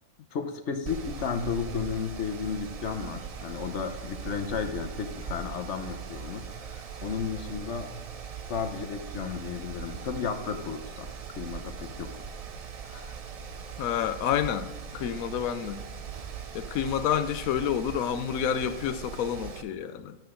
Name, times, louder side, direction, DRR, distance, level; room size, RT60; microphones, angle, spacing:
voice 1, 0.3-7.9 8.5-12.1 12.8-13.2, left 6 dB, 60° left, 7 dB, 1.1 m, -33 dB
Mechanical fan, 0.9-19.6, right 6 dB, 70° right, 0.3 m, -40 dB
voice 2, 13.8-15.8 16.5-20.2, left 9 dB, 85° left, 12 dB, 1.1 m, -29 dB
12.0 x 7.7 x 3.8 m, 1.1 s
omnidirectional pair, 1.4 m